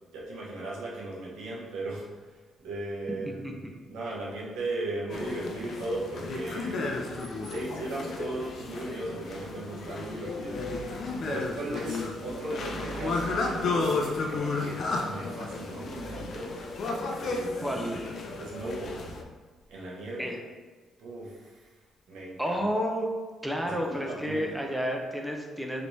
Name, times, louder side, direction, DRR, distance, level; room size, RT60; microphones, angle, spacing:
voice 1, 0.1-6.9 7.4-10.7 11.2-16.6 17.2-18.0 18.4-19.1 19.7-20.3 21.0-21.7 22.1-22.7 23.6-24.6, right 2 dB, 90° right, -5 dB, 0.9 m, -37 dB
sound 1, 5.1-19.2, left 3 dB, 60° left, 0.4 m, -33 dB
voice 2, 17.6-18.0 20.2-20.4 22.4-23.1 23.4-25.9, equal, 5° right, 1 dB, 0.5 m, -30 dB
3.3 x 3.0 x 2.7 m, 1.4 s
cardioid pair, 90°, 0 cm